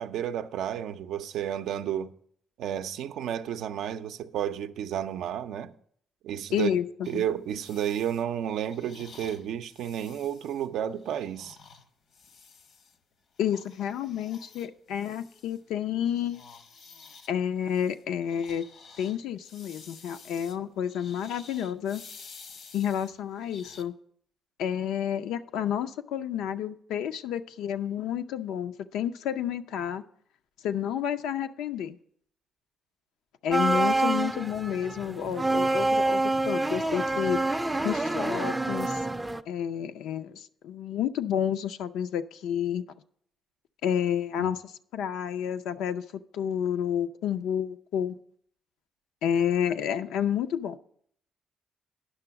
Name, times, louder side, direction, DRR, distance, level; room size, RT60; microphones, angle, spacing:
voice 1, 0.0-2.1 2.6-5.7 6.2-6.7 7.1-11.6 44.4-44.5, right 10 dB, 80° right, 0.4 m, -32 dB
voice 2, 6.5-6.9 7.1-7.2 13.4-16.4 17.3-18.7 19.0-22.0 22.7-23.9 24.6-30.0 30.6-32.0 33.4-37.4 37.8-39.0 39.5-42.8 43.8-46.0 46.3-48.2 49.2-50.8, left 9 dB, 85° left, 0.4 m, -30 dB
sound 1, 7.0-13.0 13.3-15.8 16.0-23.8, left 5 dB, 70° left, 0.9 m, -51 dB
sound 2, 33.5-39.4, right 2 dB, 10° right, 0.4 m, -27 dB
9.9 x 6.1 x 5.7 m
cardioid pair, 90°, 0 cm